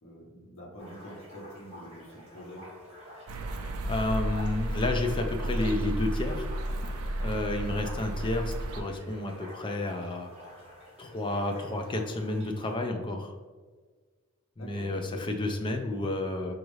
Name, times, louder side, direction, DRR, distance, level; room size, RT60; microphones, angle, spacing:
voice 1, 0.0-2.6 6.7-6.9 14.6-15.2, equal, 65° left, -3 dB, 0.9 m, -46 dB
sound 1, 0.8-12.7, equal, 30° right, 1.3 m, -49 dB
voice 2, 3.3-6.5 6.9-10.3 11.0-13.3 14.6-16.5, left 2 dB, 25° left, 4 dB, 0.4 m, -31 dB
sound 2, 3.3-8.8, right 1 dB, 70° right, 0.4 m, -32 dB
5.1 x 2.4 x 3.1 m, 1.4 s
head